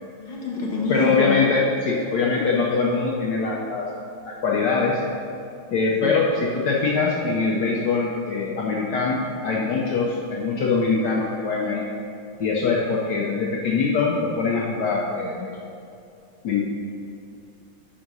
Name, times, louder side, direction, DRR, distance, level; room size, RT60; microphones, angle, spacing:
voice 1, 0.2-1.3 5.9-6.1, left 3 dB, 25° left, -4 dB, 1.2 m, -27 dB
voice 2, 0.9-3.9 4.3-5.0 5.7-11.9 12.4-15.5 16.4-16.6, left 4 dB, 65° left, -3 dB, 1.2 m, -23 dB
10.5 x 3.8 x 5.4 m, 2.6 s
omnidirectional pair, 2.2 m